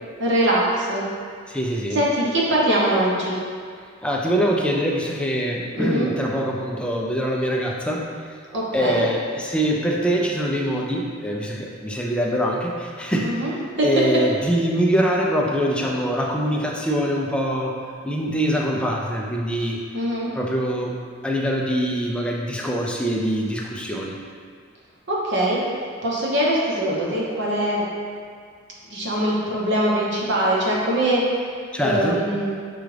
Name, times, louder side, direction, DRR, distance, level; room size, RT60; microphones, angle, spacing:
voice 1, 0.2-1.1 1.9-3.4 5.7-6.1 8.5-9.1 13.2-14.2 19.9-20.3 25.1-25.6 26.0-27.8 28.9-31.2 31.8-32.5, right 1 dB, 60° right, -4 dB, 0.9 m, -22 dB
voice 2, 1.5-2.0 4.0-8.1 8.7-13.3 13.8-17.7 18.0-19.8 20.3-20.9 21.2-24.2 31.7-32.2, equal, 5° left, -2 dB, 0.4 m, -23 dB
5.9 x 2.4 x 3.2 m, 2.1 s
head